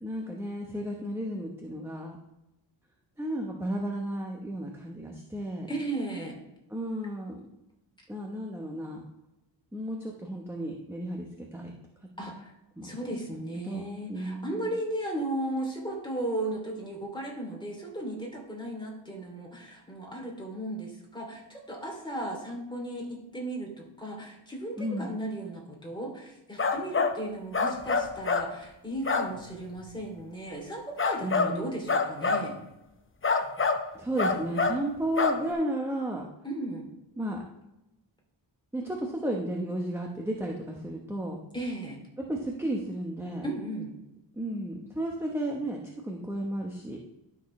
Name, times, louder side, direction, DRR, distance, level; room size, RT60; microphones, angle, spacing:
voice 1, 0.0-2.2 3.2-5.7 6.7-7.4 8.1-9.0 9.7-11.7 12.8-12.9 13.6-14.7 24.8-25.1 31.2-31.8 33.9-36.2 37.2-37.4 38.7-41.4 42.2-43.4 44.3-47.0, right 1 dB, 5° right, 0 dB, 0.9 m, -33 dB
voice 2, 5.7-6.3 12.2-12.5 12.8-32.5 36.4-36.9 41.5-42.0 43.4-43.9, right 1 dB, 10° left, -2 dB, 2.6 m, -36 dB
sound 1, 26.6-27.1 27.5-28.5 29.1-29.3 31.0-31.5 31.9-32.5 33.2-33.8 34.2-34.8 35.2-35.4, left 4 dB, 25° left, 0.7 m, -25 dB
12.0 x 6.3 x 3.1 m, 0.92 s
wide cardioid pair, 95°, 46 cm